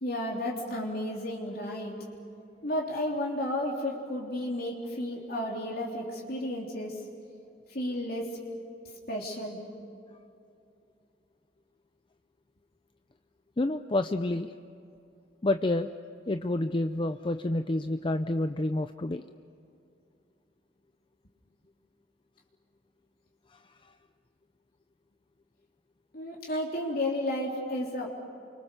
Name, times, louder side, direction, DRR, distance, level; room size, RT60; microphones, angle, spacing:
voice 1, 0.0-2.0 2.6-7.0 7.7-8.4 9.1-9.6 26.1-28.2, left 1 dB, 60° left, -2 dB, 3.4 m, -32 dB
voice 2, 13.6-14.5 15.4-15.9 16.3-19.2 23.5-23.6, left 2 dB, 30° left, 8 dB, 0.6 m, -29 dB
29.5 x 25.0 x 6.8 m, 2.6 s
head